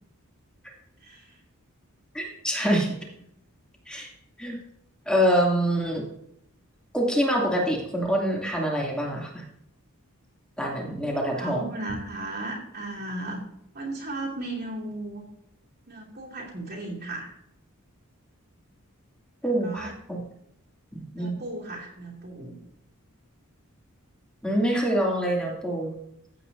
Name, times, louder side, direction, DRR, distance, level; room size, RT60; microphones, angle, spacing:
voice 1, 1.0-1.4 2.6-2.8 11.1-13.4 13.7-15.2 15.9-17.3 19.6-19.9 21.1-22.6, right 2 dB, 50° right, -6 dB, 2.7 m, -36 dB
voice 2, 2.1-2.9 3.9-4.1 4.4-4.6 5.1-6.1 6.9-9.4 10.6-11.7 19.4-20.2 20.9-21.3 24.4-25.9, equal, 5° left, -2 dB, 2.6 m, -25 dB
15.5 x 8.7 x 2.7 m, 0.74 s
head